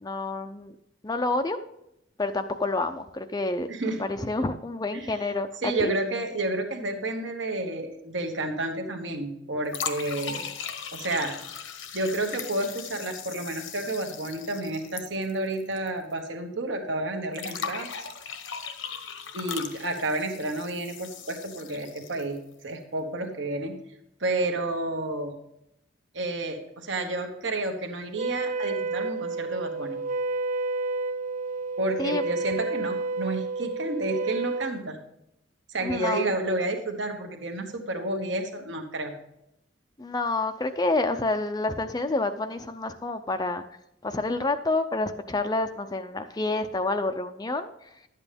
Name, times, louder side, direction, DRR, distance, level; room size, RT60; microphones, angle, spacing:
voice 1, 0.0-0.7 1.0-1.6 2.2-3.7 4.0-5.9 32.0-32.2 35.8-36.3 40.0-43.6 44.0-47.7, left 2 dB, 20° left, 8 dB, 0.5 m, -28 dB
voice 2, 3.7-4.0 4.9-5.2 5.6-10.5 10.9-11.3 11.9-17.9 19.3-22.4 22.6-23.7 24.2-25.3 26.1-30.0 31.8-35.0 35.7-39.1, right 2 dB, 65° right, 4 dB, 1.4 m, -30 dB
sound 1, 9.7-15.9 16.1-16.2 17.3-22.4, left 7 dB, 80° left, 1.1 m, -38 dB
Wind instrument woodwind instrument, 28.1-34.8, right 3 dB, 45° right, 0.5 m, -30 dB
11.5 x 8.3 x 3.5 m, 0.82 s
head